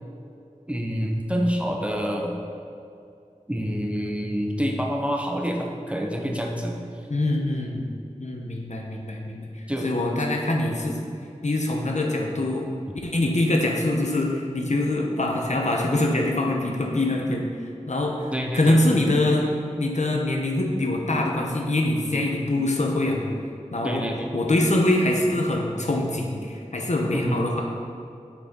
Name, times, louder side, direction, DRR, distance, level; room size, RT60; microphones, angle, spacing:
voice 1, 0.7-2.4 3.5-6.8 9.7-9.9 18.3-18.8 22.2-22.3 23.8-24.3 27.1-27.4, equal, 10° right, 0 dB, 0.8 m, -27 dB
voice 2, 7.1-7.9 8.2-9.5 9.8-11.1 11.4-12.6 13.0-17.5 17.9-18.3 18.5-19.5 19.8-23.3 23.7-24.1 24.3-27.6, left 1 dB, 65° left, 0 dB, 0.9 m, -24 dB
6.6 x 6.2 x 3.7 m, 2.5 s
wide cardioid pair, 60°, 13 cm